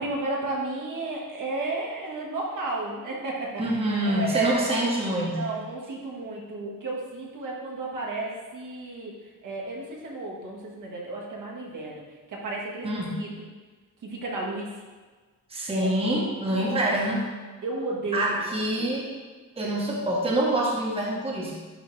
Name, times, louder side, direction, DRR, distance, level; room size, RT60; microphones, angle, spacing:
voice 1, 0.0-4.7 5.3-9.1 9.4-12.0 12.3-13.5 14.0-14.7 15.7-15.9 16.5-16.9 17.6-18.3 18.7-18.9, right 2 dB, 70° right, -3 dB, 1.5 m, -32 dB
voice 2, 3.6-5.5 12.8-13.2 15.5-17.2 18.1-19.1 19.6-21.5, right 1 dB, 15° right, -3 dB, 1.1 m, -26 dB
10.0 x 3.6 x 3.2 m, 1.4 s
wide cardioid pair, 140°, 33 cm